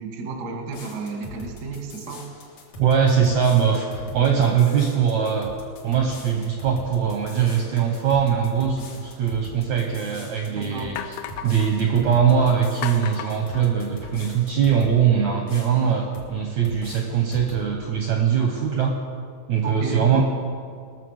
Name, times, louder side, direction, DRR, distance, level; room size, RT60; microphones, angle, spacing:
voice 1, 0.0-2.3 10.5-11.0 15.8-15.9 19.6-20.2, right 3 dB, 50° right, 2 dB, 1.2 m, -32 dB
sound 1, 0.7-15.0 15.5-16.3 16.6-17.7, left 1 dB, 55° left, 2.5 m, -41 dB
voice 2, 2.8-5.5 5.8-11.2 11.4-19.0 19.5-20.2, right 7 dB, 70° right, 2 dB, 1.8 m, -21 dB
sound 2, 9.6-9.7 10.3-10.4 11.0-11.7 12.8-14.3, left 9 dB, 80° left, 2.1 m, -35 dB
20.0 x 6.8 x 6.4 m, 2.1 s
omnidirectional pair, 4.4 m